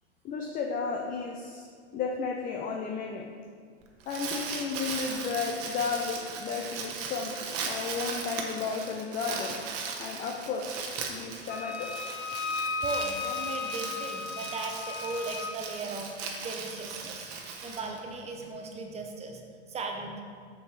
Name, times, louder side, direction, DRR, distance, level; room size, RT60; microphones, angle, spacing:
voice 1, 0.2-1.7 1.9-3.3 4.1-7.4 7.6-9.6 10.0-10.7 11.1-12.1, left 5 dB, 25° left, 1 dB, 0.5 m, -33 dB
Crumpling crinkling, 3.8-18.4, right 5 dB, 40° right, 1.1 m, -38 dB
Wind instrument woodwind instrument, 11.5-15.5, left 5 dB, 80° left, 1.3 m, -35 dB
voice 2, 12.4-20.2, right 3 dB, 20° right, 3 dB, 0.9 m, -38 dB
6.8 x 6.8 x 3.3 m, 2.1 s
hypercardioid pair, 110°, 35 cm